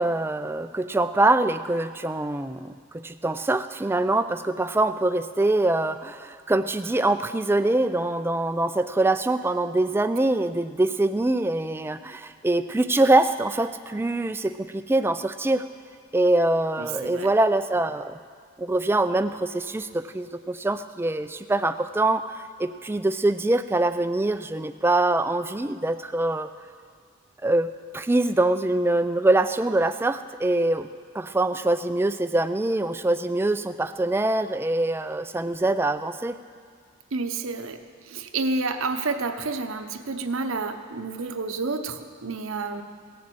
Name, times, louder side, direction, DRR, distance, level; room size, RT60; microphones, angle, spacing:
voice 1, 0.0-15.6 16.1-18.2 18.6-26.5 27.4-27.7 27.9-30.9 31.1-36.4, right 2 dB, 10° right, 11 dB, 0.3 m, -24 dB
voice 2, 16.8-17.3 37.1-42.8, right 3 dB, 75° right, 8 dB, 0.8 m, -30 dB
17.5 x 7.2 x 7.7 m, 2.1 s
head